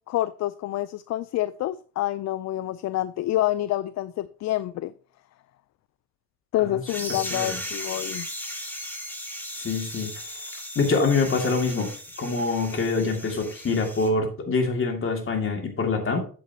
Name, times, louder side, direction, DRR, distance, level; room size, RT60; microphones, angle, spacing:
voice 1, 0.1-4.9 6.5-8.3, left 14 dB, 60° left, 0.4 m, -27 dB
sound 1, 6.9-14.1, equal, 5° left, 1.7 m, -36 dB
voice 2, 7.1-7.6 9.6-10.4 10.8-11.9 12.2-16.2, left 4 dB, 45° left, 2.3 m, -25 dB
8.5 x 7.5 x 2.8 m
cardioid pair, 90°, 30 cm